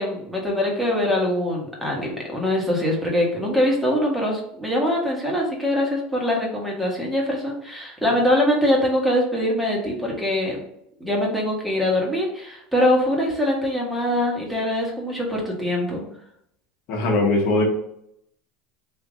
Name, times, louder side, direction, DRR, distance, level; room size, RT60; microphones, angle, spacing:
voice 1, 0.0-10.6 11.0-16.0, left 1 dB, 5° right, -2 dB, 1.3 m, -23 dB
voice 2, 16.9-17.6, left 2 dB, 60° left, -1 dB, 1.2 m, -20 dB
3.5 x 2.8 x 3.7 m, 0.74 s
supercardioid pair, 115°, 0 cm